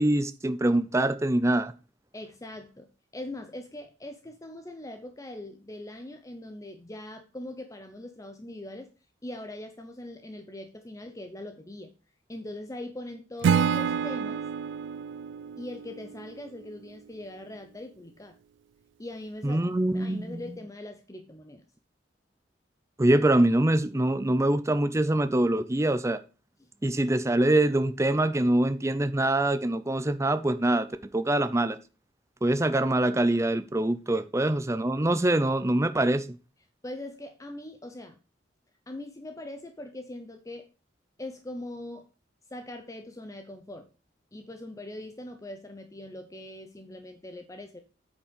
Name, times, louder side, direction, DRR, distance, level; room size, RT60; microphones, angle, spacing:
voice 1, 0.0-1.7 19.4-20.4 23.0-26.2 26.8-30.9 31.1-31.8 32.4-36.3, right 1 dB, 15° right, 0.5 m, -24 dB
voice 2, 2.1-2.9 3.1-8.9 9.2-11.9 12.3-14.4 15.6-18.4 19.0-21.6 26.6-26.7 34.1-34.2 36.8-38.2 38.9-40.7 41.2-42.1 42.5-43.9 44.3-47.8, left 1 dB, 20° left, 0.7 m, -41 dB
Acoustic guitar / Strum, 13.4-16.6, right 7 dB, 85° right, 0.3 m, -28 dB
8.4 x 5.2 x 5.2 m
head